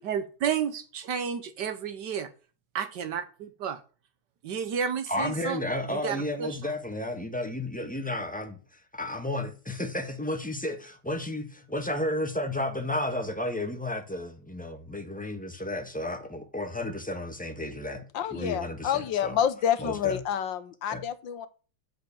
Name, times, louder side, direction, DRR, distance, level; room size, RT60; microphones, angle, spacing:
voice 1, 0.0-2.3 2.7-3.8 4.4-5.6 5.9-6.7, right 7 dB, 65° right, 1.4 m, -31 dB
voice 2, 5.1-18.0 18.3-19.4 19.8-20.2 20.9-21.0, left 1 dB, 5° left, 1.1 m, -32 dB
voice 3, 18.1-21.5, left 9 dB, 70° left, 1.5 m, -28 dB
8.1 x 6.3 x 6.9 m
omnidirectional pair, 2.2 m